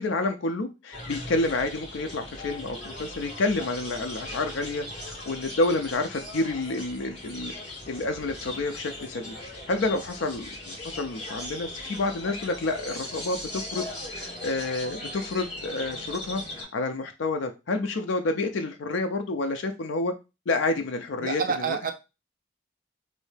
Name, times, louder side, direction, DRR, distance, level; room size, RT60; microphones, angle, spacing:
voice 1, 0.0-7.5 7.9-9.3 9.7-13.9 14.1-20.1 20.5-21.8, left 2 dB, 90° left, 0.5 m, -29 dB
sound 1, 0.9-16.6, left 1 dB, 30° left, 1.9 m, -39 dB
voice 2, 21.2-21.9, right 5 dB, 45° right, 0.5 m, -28 dB
3.1 x 2.7 x 3.3 m
head